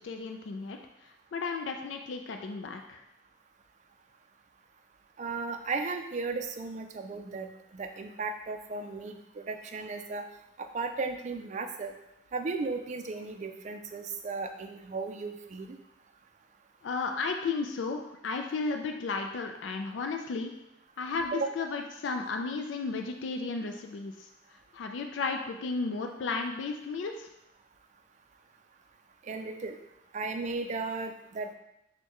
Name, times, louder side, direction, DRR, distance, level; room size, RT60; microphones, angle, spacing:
voice 1, 0.0-3.0 16.8-20.5 21.0-24.3 24.7-27.3, left 4 dB, 75° left, 4 dB, 0.4 m, -34 dB
voice 2, 5.2-10.2 10.6-11.9 12.3-15.8 21.3-21.5 29.2-29.8 30.1-31.5, right 4 dB, 40° right, 6 dB, 0.4 m, -35 dB
6.3 x 2.2 x 2.9 m, 0.85 s
head